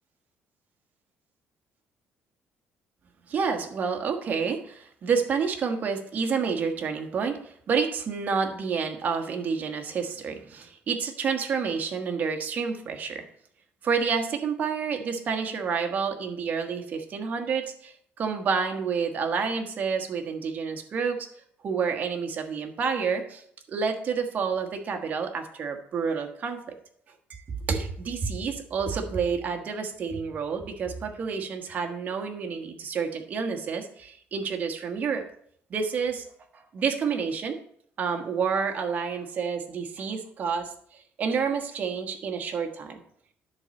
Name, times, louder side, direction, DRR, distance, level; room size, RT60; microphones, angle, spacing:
voice 1, 3.3-13.2 13.8-21.2 21.6-23.4 23.7-26.6 27.3-35.2 35.7-36.2 36.7-37.6 38.0-40.7 41.2-43.0, right 5 dB, 35° right, 4 dB, 1.3 m, -29 dB
10.5 x 4.3 x 7.0 m, 0.64 s
cardioid pair, 165°, 5 cm